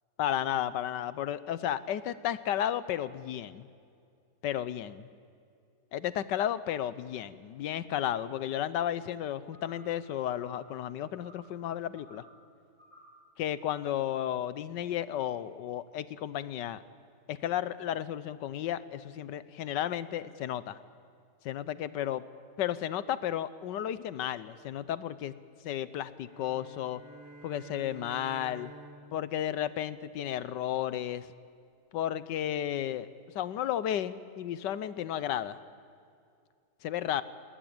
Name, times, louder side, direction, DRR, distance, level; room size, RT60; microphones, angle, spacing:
voice 1, 0.2-3.7 4.4-5.1 5.9-12.2 13.4-16.8 17.3-20.8 21.4-22.2 22.6-25.3 25.6-27.0 27.4-28.7 29.1-31.3 31.9-33.1 33.3-35.6 36.8-37.2, left 11 dB, 80° left, 15 dB, 1.4 m, -33 dB
sound 1, 9.5-10.0 10.3-10.7 11.1-11.5 11.9-12.4 12.8-13.2, right 1 dB, 35° right, 4.6 m, -57 dB
sound 2, 26.2-30.7, right 2 dB, 65° right, 2.5 m, -51 dB
20.5 x 19.5 x 8.9 m, 2.4 s
omnidirectional pair, 1.9 m